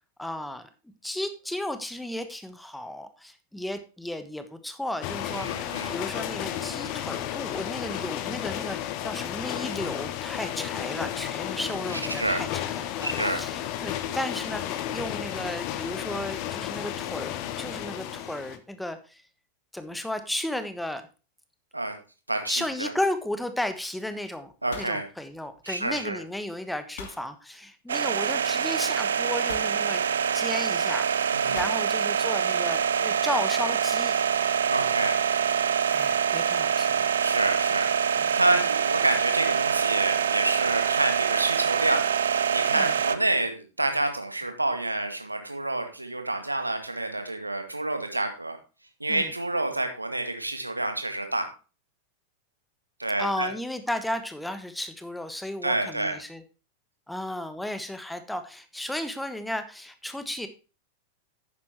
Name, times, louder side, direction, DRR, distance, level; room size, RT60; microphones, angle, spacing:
voice 1, 0.2-0.7 1.0-19.2 19.7-21.0 22.5-30.0 30.3-34.1 35.9-37.1 38.1-38.4 42.7-42.9 49.1-49.3 53.2-56.4 57.1-60.5, left 1 dB, 5° left, 9 dB, 1.3 m, -34 dB
sound 1, 5.0-18.6, left 12 dB, 45° left, 1.3 m, -33 dB
voice 2, 5.3-5.9 11.9-12.4 13.0-13.4 21.7-21.9 22.3-22.9 24.6-25.0 25.6-26.2 31.3-31.6 34.7-35.2 37.2-48.6 49.0-51.5 53.0-53.5 55.6-56.1, right 2 dB, 85° right, 5 dB, 2.1 m, -28 dB
sound 2, 23.0-23.4 23.7-24.1 24.4-25.9 27.0-27.3 28.4-28.5 29.5-29.8 31.6-31.9, left 5 dB, 60° left, 2.2 m, -43 dB
sound 3, 27.9-43.1, right 7 dB, 65° right, 0.7 m, -25 dB
11.0 x 9.3 x 3.1 m, 0.33 s
figure-of-eight pair, 90°, 0 cm